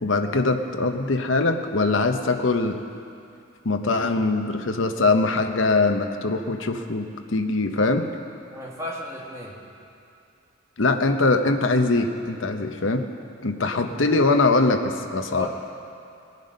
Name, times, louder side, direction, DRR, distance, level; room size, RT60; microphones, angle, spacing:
voice 1, 0.0-2.8 3.6-8.1 10.8-13.1 13.4-15.5, left 3 dB, 70° left, 6 dB, 0.9 m, -22 dB
voice 2, 8.5-9.6 15.4-15.5, left 1 dB, 15° right, -4 dB, 2.0 m, -34 dB
19.5 x 9.5 x 5.4 m, 2.5 s
head